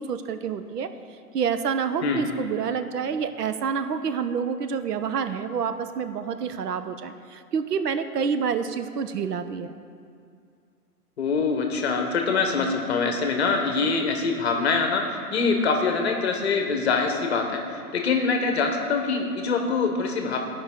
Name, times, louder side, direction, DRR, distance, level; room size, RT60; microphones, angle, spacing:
voice 1, 0.0-9.8, right 6 dB, 80° right, 10 dB, 0.8 m, -28 dB
voice 2, 11.2-20.4, left 4 dB, 45° left, 3 dB, 1.0 m, -24 dB
14.0 x 5.2 x 3.6 m, 2.3 s
hypercardioid pair, 160°, 47 cm